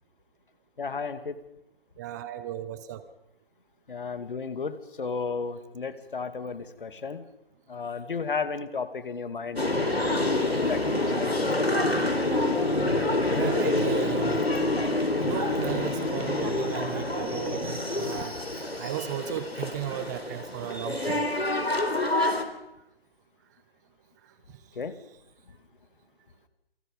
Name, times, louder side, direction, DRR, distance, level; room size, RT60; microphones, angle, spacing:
voice 1, 0.8-1.4 3.9-7.2 7.7-11.4 24.8-24.9, left 5 dB, 60° left, 10 dB, 2.5 m, -34 dB
voice 2, 2.0-3.0 13.3-14.4 15.2-18.4 18.8-21.2, right 11 dB, 20° right, 12 dB, 1.0 m, -35 dB
sound 1, 9.6-22.4, left 2 dB, 90° left, 4.0 m, -27 dB
28.5 x 24.0 x 5.5 m, 0.91 s
figure-of-eight pair, 145°, 30 cm